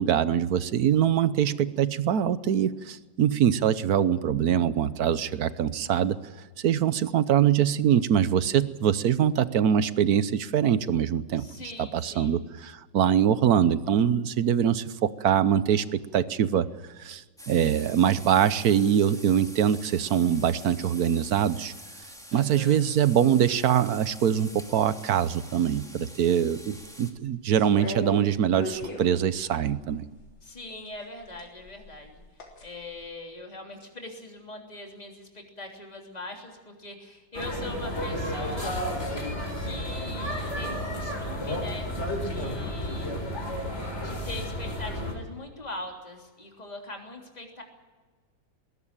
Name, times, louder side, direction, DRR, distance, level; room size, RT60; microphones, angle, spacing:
voice 1, 0.0-6.2 6.6-11.5 11.8-16.7 17.0-21.7 22.3-30.0, right 9 dB, 60° right, 15 dB, 1.2 m, -23 dB
voice 2, 11.4-12.3 22.3-22.8 30.4-32.2 32.6-38.8 39.5-43.2 44.0-47.6, left 2 dB, 20° left, 1 dB, 3.4 m, -41 dB
sound 1, 17.4-27.1, equal, ahead, 2.2 m, -46 dB
sound 2, 27.5-30.3 31.2-32.7 33.0-33.1, left 1 dB, 85° left, 4.3 m, -37 dB
sound 3, 37.3-45.1, equal, 35° left, 4.7 m, -32 dB
20.5 x 17.5 x 8.9 m, 1.4 s
omnidirectional pair, 2.0 m